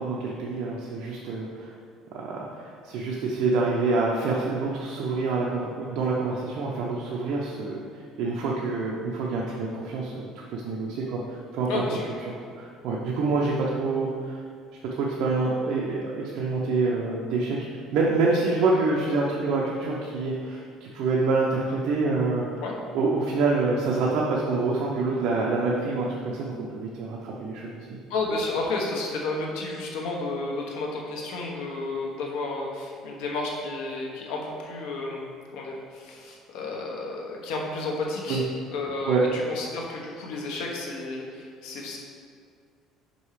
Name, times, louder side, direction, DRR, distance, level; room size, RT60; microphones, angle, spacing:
voice 1, 0.0-1.7 2.1-11.8 12.3-14.4 14.9-17.6 17.9-22.6 22.9-27.9 38.3-38.4 39.0-39.3, right 3 dB, 60° right, -3 dB, 0.7 m, -26 dB
voice 2, 11.7-12.0 22.6-22.8 28.1-35.3 35.5-38.4 38.7-42.0, left 3 dB, 80° left, -1 dB, 1.2 m, -32 dB
5.5 x 5.3 x 4.9 m, 2.2 s
cardioid pair, 165°, 0 cm